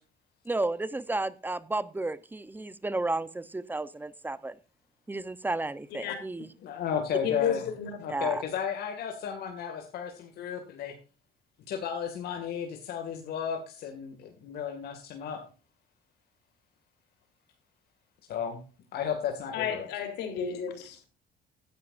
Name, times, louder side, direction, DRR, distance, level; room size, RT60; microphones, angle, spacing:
voice 1, 0.5-4.6 5.1-6.5 8.1-8.4, right 2 dB, 10° right, 0.9 m, -32 dB
voice 2, 6.6-7.6 8.0-10.9 11.7-15.4 18.3-18.6 18.9-19.9, left 8 dB, 70° left, 2.3 m, -33 dB
voice 3, 7.2-7.9 19.5-21.0, left 8 dB, 85° left, 3.7 m, -32 dB
15.0 x 11.0 x 2.6 m
cardioid pair, 110°, 17 cm